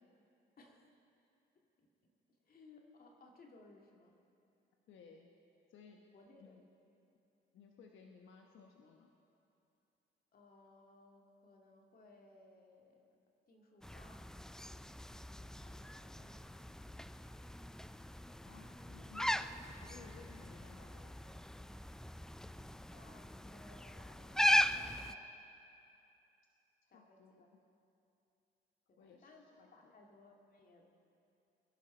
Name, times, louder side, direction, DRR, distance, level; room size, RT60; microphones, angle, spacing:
voice 1, 0.6-0.9 1.6-1.9 2.3-4.2 6.1-6.6 10.3-13.0 13.5-14.3 15.6-16.8 22.9-25.4 26.9-27.5 28.9-30.9, left 2 dB, 50° left, 0 dB, 2.1 m, -62 dB
voice 2, 4.9-5.3 5.7-6.1 6.4-6.6 7.5-9.1 18.4-21.4 26.8-27.4 29.0-29.3 29.6-29.9, left 5 dB, 75° left, 1 dB, 1.1 m, -59 dB
sound 1, 13.8-25.1, left 1 dB, 5° left, 0.3 m, -38 dB
21.5 x 11.0 x 4.4 m, 2.8 s
cardioid pair, 90°, 20 cm